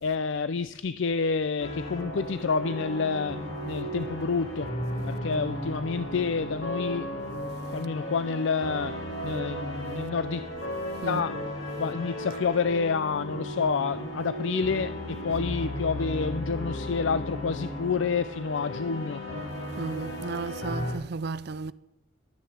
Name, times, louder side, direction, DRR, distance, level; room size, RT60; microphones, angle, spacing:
voice 1, 0.0-3.4 3.7-4.7 5.0-7.2 7.7-9.0 9.2-10.4 11.1-11.4 11.8-19.2, left 5 dB, 70° left, 0.5 m, -28 dB
sound 1, 1.6-20.9, equal, 85° left, 5.6 m, -35 dB
voice 2, 19.8-21.7, right 4 dB, 55° right, 0.5 m, -34 dB
12.5 x 10.0 x 8.1 m
head